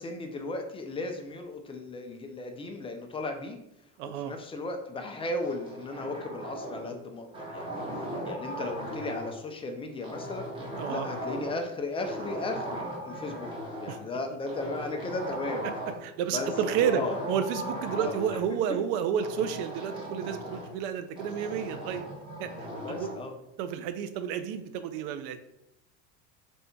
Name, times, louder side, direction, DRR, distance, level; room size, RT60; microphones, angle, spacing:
voice 1, 0.0-3.6 4.0-7.9 8.2-10.5 10.9-13.5 13.8-15.7 16.3-16.5 16.9-17.2 18.0-18.2 22.7-23.3, left 2 dB, 15° left, 4 dB, 0.4 m, -36 dB
voice 2, 4.0-4.3 10.7-11.1 13.9-14.0 15.6-15.7 16.0-17.0 17.3-22.0 22.4-23.1 23.6-25.4, right 8 dB, 70° right, 10 dB, 0.5 m, -31 dB
sound 1, 5.4-7.0 7.3-9.4 10.0-11.7 12.0-14.0 14.5-16.1 16.4-18.4 19.2-20.8 21.2-23.2, equal, 15° right, 1.2 m, -38 dB
3.3 x 2.7 x 4.3 m, 0.83 s
supercardioid pair, 125°, 37 cm